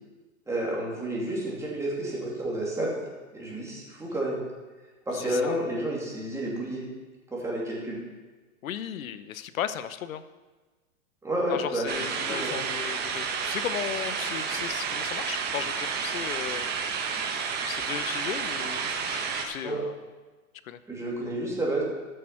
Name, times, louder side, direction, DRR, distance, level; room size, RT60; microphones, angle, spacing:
voice 1, 0.5-4.4 5.1-6.8 7.3-8.0 11.2-12.5 19.6-19.8 20.9-21.8, right 1 dB, 5° right, -4 dB, 2.8 m, -30 dB
voice 2, 5.1-5.6 8.6-10.2 11.5-16.7 17.6-19.9 20.7-20.8, left 10 dB, 85° left, 13 dB, 0.9 m, -36 dB
sound 1, 11.9-19.5, right 6 dB, 25° right, 1.1 m, -31 dB
13.5 x 6.6 x 5.7 m, 1.3 s
hypercardioid pair, 140°, 40 cm